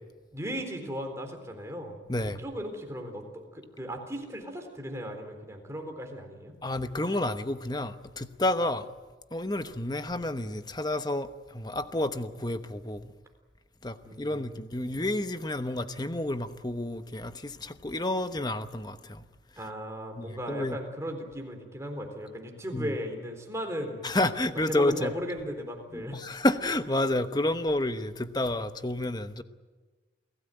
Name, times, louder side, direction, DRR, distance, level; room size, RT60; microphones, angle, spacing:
voice 1, 0.3-2.0 2.4-6.6 14.0-14.7 19.6-24.1 24.5-26.5, equal, 15° right, 4.0 m, -37 dB
voice 2, 2.1-2.4 6.6-8.9 9.3-13.1 13.8-19.2 20.2-20.8 22.7-22.9 24.0-25.1 25.9-29.4, left 1 dB, 20° left, 1.0 m, -30 dB
28.5 x 17.0 x 9.2 m
head